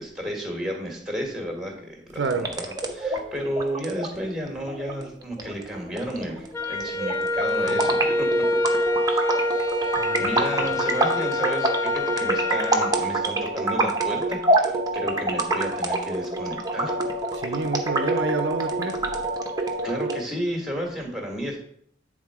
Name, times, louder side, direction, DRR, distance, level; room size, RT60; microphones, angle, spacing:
voice 1, 0.0-8.3 8.6-9.0 10.2-17.0 19.6-21.6, equal, 5° right, 1.7 m, -32 dB
voice 2, 2.1-2.5 7.7-7.9 10.0-10.8 17.3-19.0, right 4 dB, 60° right, 0.5 m, -29 dB
sound 1, 2.2-20.2, right 2 dB, 20° right, 0.8 m, -27 dB
Wind instrument woodwind instrument, 6.5-13.0, left 2 dB, 15° left, 0.5 m, -26 dB
9.2 x 3.7 x 4.8 m
head